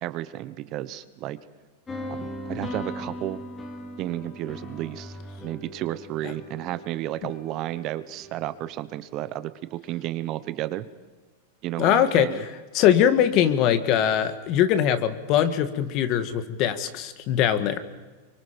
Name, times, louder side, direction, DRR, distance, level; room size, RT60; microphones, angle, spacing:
voice 1, 0.0-1.4 2.0-3.4 4.0-10.9 11.6-12.4, right 14 dB, 40° right, 14 dB, 1.0 m, -32 dB
sound 1, 1.9-8.8, left 1 dB, 15° left, 3.0 m, -39 dB
voice 2, 11.8-12.3 12.7-17.8, left 10 dB, 45° left, 10 dB, 1.7 m, -21 dB
25.0 x 24.0 x 5.3 m, 1.3 s
hypercardioid pair, 130°, 0 cm